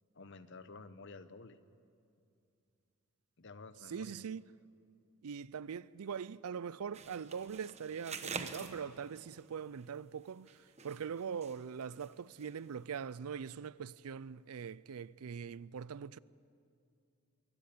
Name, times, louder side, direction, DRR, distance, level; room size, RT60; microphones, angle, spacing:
voice 1, 0.1-1.6 3.4-4.2, left 3 dB, 55° left, 0.9 m, -51 dB
voice 2, 3.9-4.5 5.2-16.2, right 7 dB, 85° right, 0.4 m, -42 dB
sound 1, 6.9-9.4 10.2-11.6 11.9-12.1 12.4-12.5, right 5 dB, 30° right, 1.1 m, -46 dB
22.5 x 17.5 x 8.5 m
head